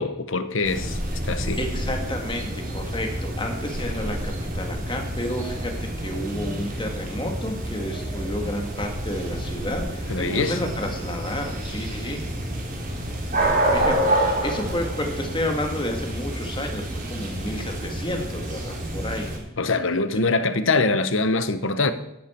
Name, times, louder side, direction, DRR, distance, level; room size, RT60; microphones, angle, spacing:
voice 1, 0.0-1.6 10.1-10.6 19.6-21.9, left 3 dB, 60° left, 1.0 m, -23 dB
sound 1, 0.6-19.4, right 1 dB, 40° right, 3.3 m, -28 dB
voice 2, 1.6-12.2 13.7-14.1 14.4-19.3 20.1-20.2, left 1 dB, 20° left, 1.8 m, -31 dB
14.0 x 11.5 x 4.5 m
head